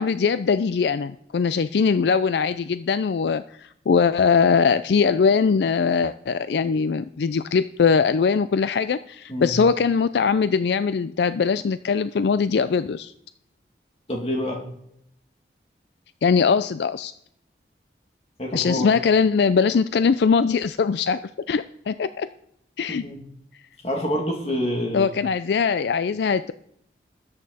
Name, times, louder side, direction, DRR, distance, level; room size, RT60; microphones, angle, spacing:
voice 1, 0.0-13.1 16.2-17.1 18.5-21.2 21.5-22.3 22.8-23.0 24.9-26.5, left 5 dB, 75° left, 14 dB, 0.4 m, -21 dB
voice 2, 14.1-14.6 18.4-18.9 22.9-23.2 23.8-25.1, equal, 35° left, 0 dB, 2.6 m, -27 dB
13.5 x 8.9 x 4.2 m, 0.72 s
head